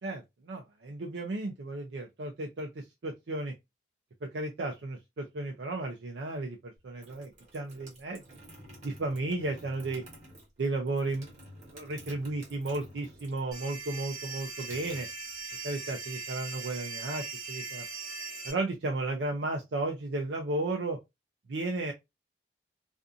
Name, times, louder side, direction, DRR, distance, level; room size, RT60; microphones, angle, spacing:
voice 1, 0.0-3.5 4.2-8.2 8.8-10.0 10.6-11.3 11.7-15.1 15.6-17.8 18.4-21.0 21.5-21.9, right 2 dB, 75° right, 0.5 m, -34 dB
sound 1, 6.8-13.5 13.8-15.7, right 1 dB, 40° right, 1.2 m, -51 dB
sound 2, 13.5-18.5, right 4 dB, 20° right, 1.2 m, -40 dB
2.5 x 2.5 x 2.4 m
head